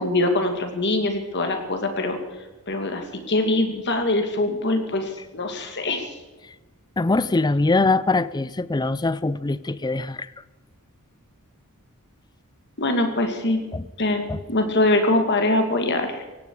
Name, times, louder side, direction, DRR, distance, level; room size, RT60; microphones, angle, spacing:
voice 1, 0.0-2.2 2.7-6.1 12.8-13.6 14.0-16.2, left 2 dB, 50° left, 2.6 m, -23 dB
voice 2, 7.0-10.3 13.7-13.8 14.3-14.4, left 3 dB, 20° left, 0.5 m, -22 dB
17.0 x 17.0 x 4.9 m
head